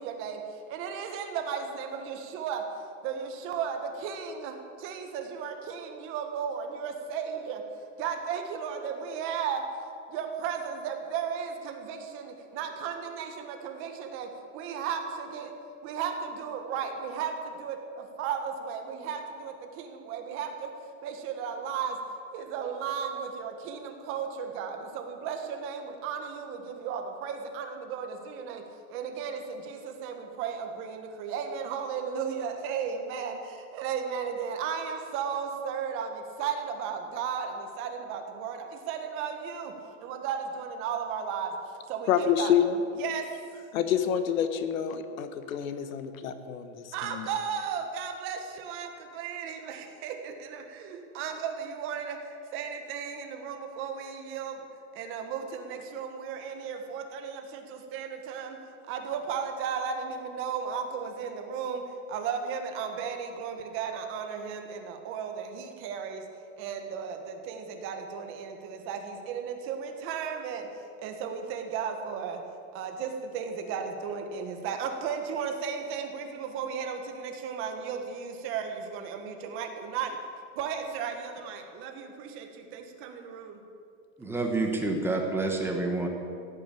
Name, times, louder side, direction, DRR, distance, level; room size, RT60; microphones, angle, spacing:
voice 1, 0.0-2.7 3.0-7.6 8.0-9.7 10.1-15.5 15.8-20.7 21.0-22.0 22.3-39.7 40.0-42.5 43.0-43.3 46.9-54.6 54.9-66.3 66.6-72.4 72.7-80.2 80.5-83.6, right 7 dB, 30° right, 5 dB, 1.5 m, -35 dB
voice 2, 42.1-42.8 43.7-47.3, left 9 dB, 85° left, 9 dB, 1.5 m, -28 dB
voice 3, 84.2-86.1, right 2 dB, 5° right, 2 dB, 1.0 m, -28 dB
16.0 x 8.9 x 8.5 m, 2.4 s
supercardioid pair, 170°, 40 cm